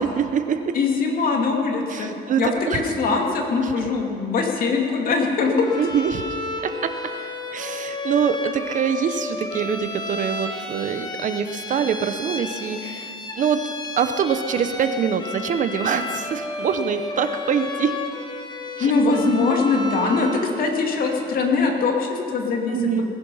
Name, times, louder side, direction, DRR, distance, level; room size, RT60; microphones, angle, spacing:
voice 1, 0.0-0.8 1.9-3.0 3.6-3.9 5.7-6.2 6.6-6.9 7.5-18.0 18.8-18.9 22.7-23.1, right 7 dB, 50° right, 9 dB, 0.9 m, -24 dB
voice 2, 0.7-2.1 2.4-5.7 18.8-22.8, left 4 dB, 60° left, 1 dB, 2.4 m, -22 dB
Bowed string instrument, 5.6-20.5, left 2 dB, 25° left, 1.7 m, -32 dB
19.5 x 11.0 x 5.6 m, 2.6 s
cardioid pair, 110°, 17 cm